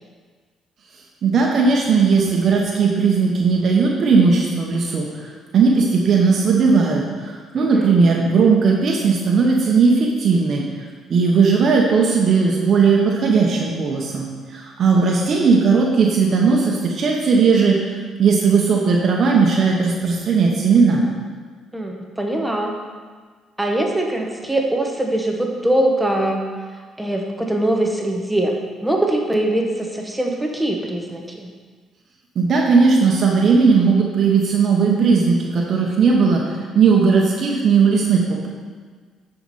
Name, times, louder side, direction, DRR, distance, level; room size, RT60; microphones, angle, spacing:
voice 1, 1.2-10.6 11.1-21.0 32.3-38.5, right 5 dB, 55° right, -1 dB, 1.1 m, -17 dB
voice 2, 7.6-7.9 21.7-22.8 23.6-26.5 27.0-31.5, right 1 dB, 5° right, 1 dB, 1.0 m, -22 dB
9.3 x 5.1 x 4.2 m, 1.6 s
cardioid pair, 90°, 0 cm